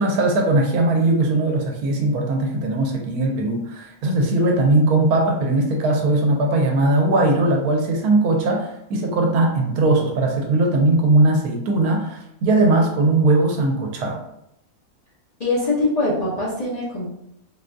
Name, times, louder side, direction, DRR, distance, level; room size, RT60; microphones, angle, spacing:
voice 1, 0.0-14.2, right 2 dB, 80° right, 2 dB, 1.1 m, -19 dB
voice 2, 15.4-17.1, left 2 dB, 75° left, -7 dB, 0.3 m, -22 dB
3.7 x 2.6 x 2.2 m, 0.78 s
omnidirectional pair, 1.6 m